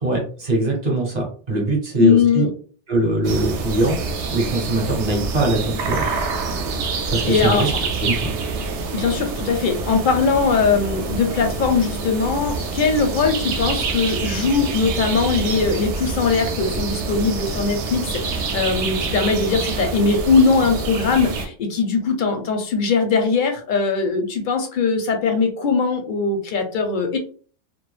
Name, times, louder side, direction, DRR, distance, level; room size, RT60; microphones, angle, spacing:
voice 1, 0.0-2.4 2.9-4.0 4.3-6.2 7.1-7.7 8.0-8.3, right 2 dB, 40° right, 0 dB, 0.8 m, -22 dB
voice 2, 2.0-2.5 7.3-7.7 8.9-27.2, left 5 dB, 60° left, 4 dB, 0.5 m, -20 dB
sound 1, 3.2-21.5, right 4 dB, 70° right, 0.8 m, -26 dB
2.3 x 2.1 x 3.1 m, 0.43 s
omnidirectional pair, 1.2 m